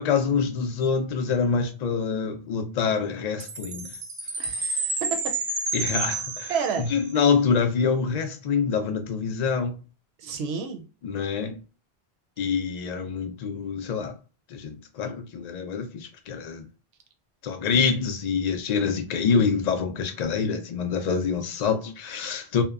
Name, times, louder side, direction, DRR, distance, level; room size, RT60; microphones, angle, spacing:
voice 1, 0.0-3.9 5.7-6.5 6.8-9.8 11.0-11.6 12.4-14.2 14.5-16.7 17.4-22.6, left 5 dB, 55° left, 0.5 m, -26 dB
Chime, 3.4-7.1, right 3 dB, 40° right, 0.5 m, -30 dB
voice 2, 4.4-5.4 6.5-6.9 10.2-10.8, right 6 dB, 80° right, 0.8 m, -30 dB
2.8 x 2.0 x 2.3 m
omnidirectional pair, 1.1 m